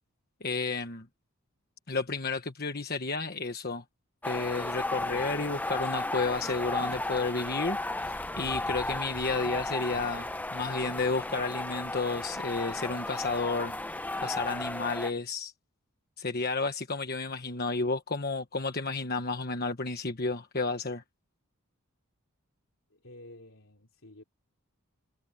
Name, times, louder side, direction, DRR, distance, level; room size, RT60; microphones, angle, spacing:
voice 1, 0.4-1.1 1.9-3.8 4.2-15.5 16.2-21.0, left 3 dB, 45° left, 1.3 m, -32 dB
sound 1, 4.2-15.1, left 2 dB, 5° left, 0.7 m, -34 dB
voice 2, 22.9-24.2, left 1 dB, 60° left, 3.8 m, -51 dB
head